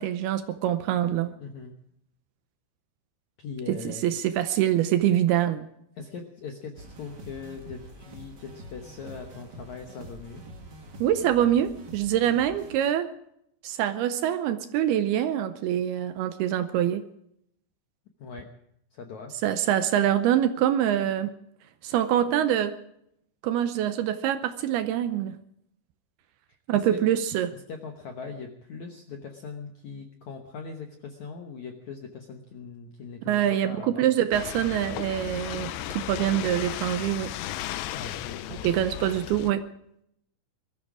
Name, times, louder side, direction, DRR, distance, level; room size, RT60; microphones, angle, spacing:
voice 1, 0.0-1.3 3.7-3.8 4.0-5.7 11.0-13.1 13.6-17.0 19.4-21.3 21.8-22.7 23.4-25.4 26.7-27.5 33.3-37.3 38.6-39.6, right 11 dB, 75° right, 10 dB, 2.4 m, -25 dB
voice 2, 1.4-1.7 3.4-4.1 6.0-10.4 18.2-18.5 18.9-19.4 26.5-27.1 27.5-34.2 37.9-38.8, left 5 dB, 70° left, 4 dB, 1.7 m, -40 dB
sound 1, 6.7-12.7, right 1 dB, 50° right, 1.2 m, -45 dB
sound 2, 34.3-39.5, left 14 dB, 90° left, 3.0 m, -35 dB
21.5 x 13.5 x 4.9 m, 0.75 s
omnidirectional pair, 5.0 m